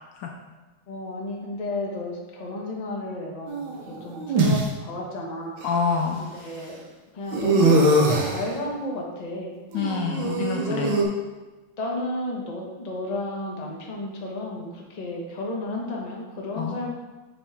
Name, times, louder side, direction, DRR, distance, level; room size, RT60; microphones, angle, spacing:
voice 1, 0.9-5.6 6.2-6.8 7.1-9.5 10.7-11.1 11.8-16.9, left 1 dB, 35° left, -2 dB, 0.6 m, -32 dB
sound 1, 3.5-4.6 5.6-5.7 7.3-8.5 9.7-11.0, right 2 dB, 70° right, 1.6 m, -22 dB
voice 2, 5.6-6.2 9.7-11.0 16.5-16.8, left 5 dB, 75° left, 2 dB, 1.1 m, -27 dB
7.2 x 4.3 x 3.4 m, 1.2 s
omnidirectional pair, 2.3 m